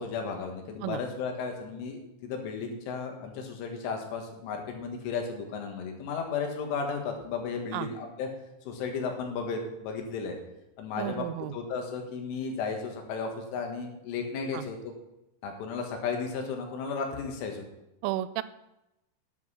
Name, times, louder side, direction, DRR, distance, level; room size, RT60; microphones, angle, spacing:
voice 1, 0.0-8.3 8.7-10.4 10.8-14.8 15.4-17.6, left 5 dB, 75° left, 3 dB, 4.0 m, -34 dB
voice 2, 11.0-11.5 14.5-14.6 18.0-18.4, right 14 dB, 85° right, 15 dB, 3.1 m, -32 dB
10.5 x 8.0 x 5.6 m, 0.92 s
omnidirectional pair, 5.7 m